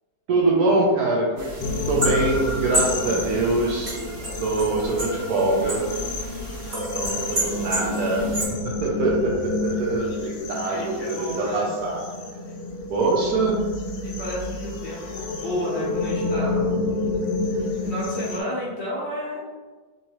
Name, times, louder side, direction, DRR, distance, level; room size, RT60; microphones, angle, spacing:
voice 1, 0.3-4.0 4.4-5.9 6.9-8.3 8.6-12.1 12.9-13.6, right 2 dB, 70° right, -3 dB, 1.0 m, -24 dB
sound 1, 1.4-8.5, right 1 dB, 35° right, 1.3 m, -30 dB
sound 2, 1.6-18.4, left 3 dB, 85° left, 1.3 m, -30 dB
voice 2, 3.0-3.5 9.0-9.1 10.6-11.8 14.0-16.6 17.8-19.4, equal, 45° left, -7 dB, 1.1 m, -32 dB
3.5 x 3.0 x 2.8 m, 1.3 s
omnidirectional pair, 1.9 m